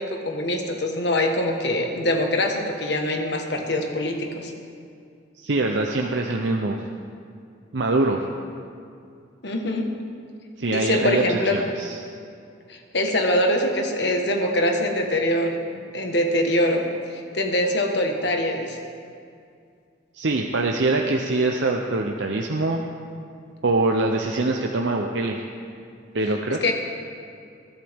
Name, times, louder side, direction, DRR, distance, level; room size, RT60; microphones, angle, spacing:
voice 1, 0.0-4.5 9.4-9.9 10.7-11.5 12.7-16.8 17.1-18.8 26.6-26.7, left 1 dB, 60° left, 3 dB, 1.5 m, -23 dB
voice 2, 5.4-6.8 7.7-8.2 10.6-12.0 20.1-22.8 23.6-25.4 26.1-26.7, right 2 dB, 70° right, 2 dB, 0.7 m, -23 dB
21.5 x 11.5 x 3.6 m, 2.4 s
head